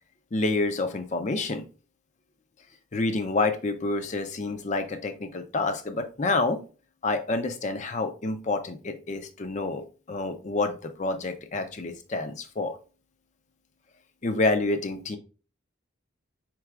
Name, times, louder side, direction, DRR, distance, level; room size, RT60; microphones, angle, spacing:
voice 1, 0.3-1.6 2.9-6.6 7.0-12.8 14.2-15.2, left 3 dB, 35° left, 8 dB, 0.5 m, -28 dB
4.6 x 4.1 x 2.4 m, 0.35 s
head